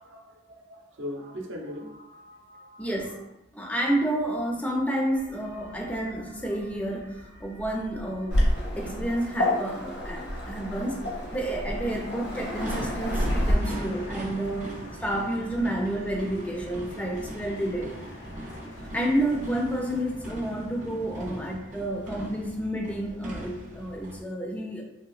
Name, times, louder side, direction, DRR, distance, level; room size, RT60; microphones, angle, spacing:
voice 1, 0.0-3.3, left 1 dB, 80° right, 0 dB, 0.6 m, -41 dB
voice 2, 2.8-3.1 3.5-8.4 8.8-11.1 11.3-14.7 15.0-17.9 18.8-24.8, right 1 dB, 10° left, 0 dB, 0.4 m, -30 dB
sound 1, 5.1-24.2, right 1 dB, 40° right, 0.6 m, -41 dB
Waves surf, 8.3-13.5, left 1 dB, 65° left, 0.8 m, -28 dB
sound 2, 10.6-21.4, left 1 dB, 90° left, 0.9 m, -47 dB
3.1 x 2.8 x 2.4 m, 0.87 s
head